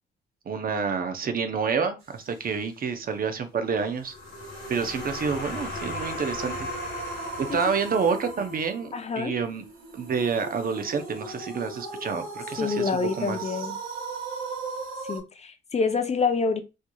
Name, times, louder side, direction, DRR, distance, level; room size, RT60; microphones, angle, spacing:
voice 1, 0.5-4.1 4.7-6.7 7.4-8.9 9.2-9.6 9.9-12.9 13.2-13.6, right 5 dB, 45° right, 8 dB, 0.7 m, -28 dB
sound 1, 3.9-8.6, left 4 dB, 65° left, 1.3 m, -39 dB
sound 2, 4.1-15.2, right 3 dB, 80° right, 1.7 m, -37 dB
voice 2, 8.9-9.3 12.6-13.8 15.1-16.6, left 5 dB, 35° left, 7 dB, 0.6 m, -26 dB
4.4 x 3.0 x 2.3 m, 0.27 s
cardioid pair, 90°, 20 cm